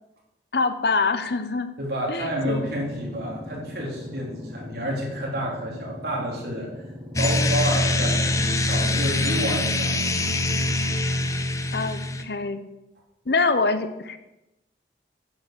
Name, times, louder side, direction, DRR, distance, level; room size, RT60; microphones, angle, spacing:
voice 1, 0.5-1.7 2.1-2.7 11.7-12.6 13.3-14.2, left 3 dB, 70° left, 10 dB, 0.9 m, -25 dB
voice 2, 1.8-6.7 7.2-10.0, equal, 65° right, -3 dB, 3.7 m, -29 dB
sound 1, 2.3-9.5, left 1 dB, 15° right, 2.9 m, -40 dB
sound 2, 7.2-12.2, left 2 dB, 20° left, 0.7 m, -23 dB
9.8 x 7.4 x 7.0 m, 0.94 s
head